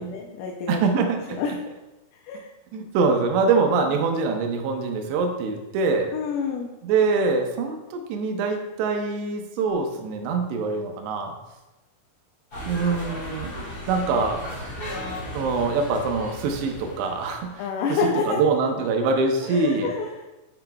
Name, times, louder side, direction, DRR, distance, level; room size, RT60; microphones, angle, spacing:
voice 1, 0.0-0.8 1.3-1.5 2.2-2.5 6.1-6.7 17.6-18.4 19.4-20.1, left 5 dB, 85° left, -1 dB, 3.2 m, -28 dB
voice 2, 0.7-1.4 2.7-6.1 6.8-11.3 12.6-14.7 15.3-17.6 17.9-19.9, right 4 dB, 80° right, 3 dB, 2.6 m, -24 dB
sound 1, 12.5-17.6, equal, 40° left, 1.3 m, -36 dB
8.5 x 5.9 x 2.3 m, 1.0 s
omnidirectional pair, 5.7 m